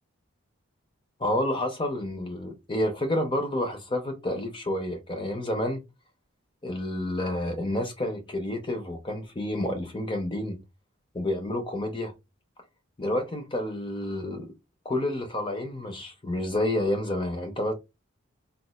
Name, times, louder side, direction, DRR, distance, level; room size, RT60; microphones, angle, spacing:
voice 1, 1.2-5.8 6.6-10.6 11.1-12.1 13.0-14.5 14.8-17.7, left 1 dB, 25° left, 0.7 m, -29 dB
4.0 x 2.4 x 2.3 m
head